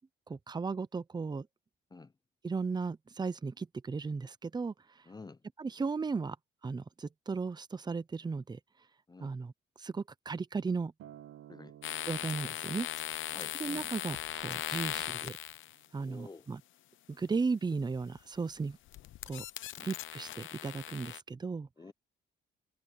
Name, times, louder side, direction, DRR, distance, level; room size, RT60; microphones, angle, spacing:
voice 1, 0.3-1.5 2.4-4.7 5.6-6.4 6.6-8.6 9.2-9.5 9.8-10.9 12.1-12.9 13.6-15.4 15.9-16.6 17.1-18.8 19.3-19.4 19.8-21.7, right 4 dB, 20° right, 0.7 m, -35 dB
voice 2, 5.1-5.4 9.1-9.3 11.5-11.8 12.4-12.5 13.3-13.8 14.9-15.0 16.0-16.5 19.8-19.9 21.8-21.9, left 3 dB, 20° left, 0.8 m, -50 dB
Acoustic guitar, 11.0-15.3 16.1-16.2, right 12 dB, 90° right, 1.8 m, -56 dB
sound 1, 11.8-15.9 17.8-18.2 18.6-21.2, left 14 dB, 80° left, 0.9 m, -39 dB
cardioid pair, 90°, 20 cm